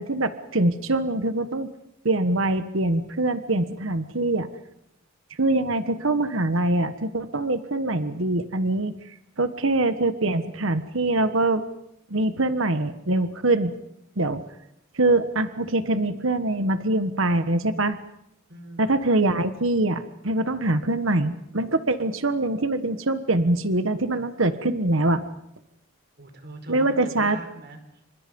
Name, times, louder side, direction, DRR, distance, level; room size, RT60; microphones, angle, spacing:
voice 1, 0.0-1.7 2.0-4.5 5.4-8.9 9.4-11.6 12.1-13.7 14.2-14.4 14.9-18.0 18.8-25.2 26.7-27.4, right 2 dB, 70° right, 10 dB, 1.4 m, -23 dB
voice 2, 18.5-18.9 26.2-27.8, right 2 dB, 50° right, 6 dB, 5.2 m, -41 dB
29.0 x 26.0 x 5.4 m, 0.79 s
head